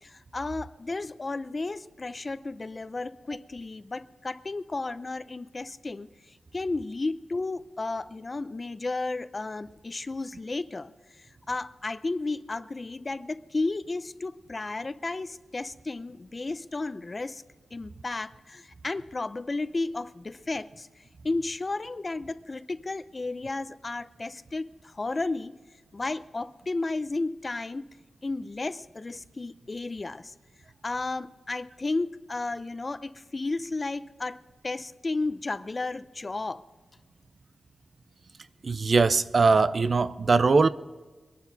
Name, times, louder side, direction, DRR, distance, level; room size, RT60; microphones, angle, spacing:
voice 1, 0.0-10.9 11.2-17.4 17.7-20.9 21.2-25.5 25.9-27.9 28.2-30.3 30.8-34.4 34.6-36.6, left 3 dB, 35° left, 0.6 m, -33 dB
voice 2, 38.6-40.7, right 4 dB, 50° right, 0.6 m, -21 dB
23.0 x 11.5 x 4.0 m
wide cardioid pair, 115°, 0 cm